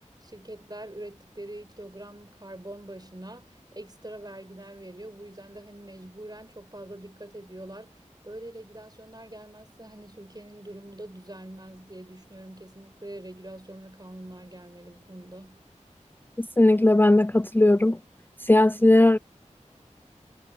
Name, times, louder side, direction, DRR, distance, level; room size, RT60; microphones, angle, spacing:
voice 1, 0.0-15.7, right 1 dB, 30° right, 6.2 m, -44 dB
voice 2, 16.4-18.0 18.4-19.2, left 1 dB, 15° left, 0.5 m, -18 dB
wide cardioid pair, 40°, 13 cm